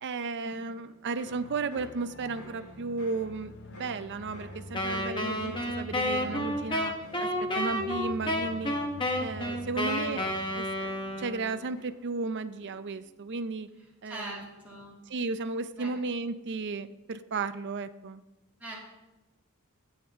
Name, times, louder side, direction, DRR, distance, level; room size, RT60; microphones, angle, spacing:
voice 1, 0.0-6.9 7.2-8.8 9.2-10.2 10.5-10.9 11.2-13.7 14.0-14.3 15.1-18.2, right 4 dB, 55° right, 12 dB, 0.5 m, -34 dB
sound 1, 0.7-12.3 12.5-13.1, equal, 85° left, 3.9 m, -53 dB
sound 2, 1.2-12.0, left 2 dB, 55° left, 0.6 m, -47 dB
Wind instrument woodwind instrument, 4.7-11.6, left 1 dB, 25° left, 1.2 m, -31 dB
voice 2, 14.0-14.9 15.8-15.9 18.6-18.7, right 1 dB, 5° right, -7 dB, 2.5 m, -41 dB
13.5 x 8.9 x 3.6 m, 1.0 s
head